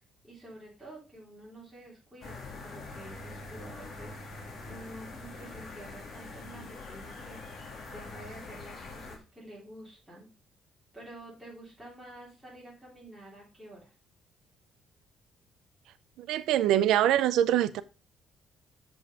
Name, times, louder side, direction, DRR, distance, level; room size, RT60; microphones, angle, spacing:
voice 1, 0.2-4.4 4.7-7.6 7.8-10.3 10.9-13.9, right 1 dB, ahead, 3.4 m, -49 dB
sound 1, 2.2-9.2, left 3 dB, 40° left, 1.9 m, -44 dB
voice 2, 16.2-17.8, right 11 dB, 85° right, 0.6 m, -24 dB
7.1 x 5.4 x 4.9 m
cardioid pair, 165°, 0 cm